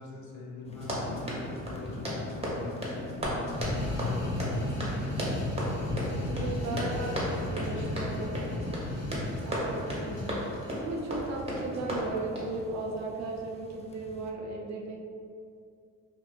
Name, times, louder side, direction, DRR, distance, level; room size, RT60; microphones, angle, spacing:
voice 1, 0.0-5.4 6.3-6.9 7.4-8.5, left 2 dB, 75° left, -3 dB, 0.9 m, -43 dB
sound 1, 0.6-14.3, left 2 dB, 20° left, 0.4 m, -45 dB
Run, 0.7-12.6, equal, 20° right, 1.0 m, -35 dB
sound 2, 3.4-10.8, left 1 dB, 40° left, 1.5 m, -34 dB
voice 2, 6.3-8.7 9.4-10.5 10.8-15.0, right 3 dB, 60° right, 0 dB, 0.6 m, -36 dB
5.1 x 2.3 x 2.5 m, 2.4 s
cardioid pair, 90°, 30 cm